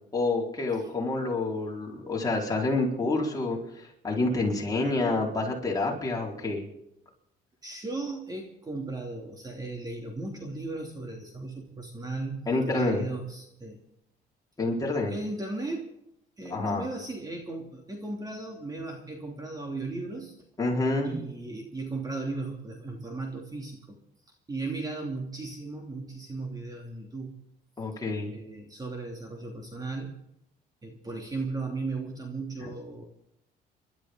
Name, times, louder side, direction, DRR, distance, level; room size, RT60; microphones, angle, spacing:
voice 1, 0.1-6.6 12.5-13.0 14.6-15.1 16.5-16.8 20.6-21.2 27.8-28.3 32.6-32.7, left 2 dB, 20° left, -3 dB, 4.6 m, -28 dB
voice 2, 7.6-13.8 15.1-15.9 16.4-20.3 21.0-24.0 24.5-27.3 28.3-30.2 30.8-33.0, right 3 dB, 20° right, 1 dB, 2.9 m, -36 dB
29.5 x 12.5 x 3.9 m, 0.80 s
cardioid pair, 110°, 17 cm